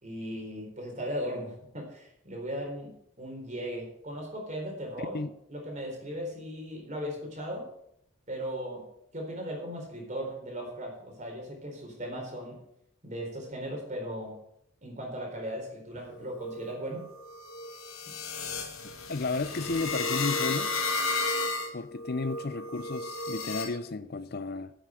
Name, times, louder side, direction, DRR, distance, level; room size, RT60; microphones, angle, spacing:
voice 1, 0.0-2.9 3.2-5.2 5.5-7.7 8.3-8.8 9.1-12.6 13.0-14.4 14.8-17.1, equal, 35° right, 4.1 m, -37 dB
sound 1, 16.1-23.6, left 3 dB, 80° left, 2.5 m, -33 dB
voice 2, 19.1-20.7 21.7-24.7, left 3 dB, 45° left, 0.6 m, -33 dB
10.0 x 8.4 x 7.6 m
head